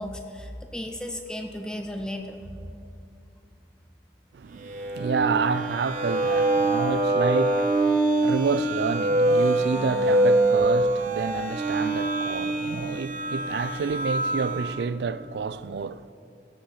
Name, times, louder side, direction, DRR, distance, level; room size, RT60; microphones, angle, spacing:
voice 1, 0.0-2.7, left 1 dB, 5° left, 0.6 m, -35 dB
voice 2, 4.3-16.1, right 5 dB, 70° right, 0.4 m, -29 dB
sound 1, 4.6-14.8, right 2 dB, 45° right, 1.6 m, -24 dB
17.0 x 6.5 x 5.7 m
head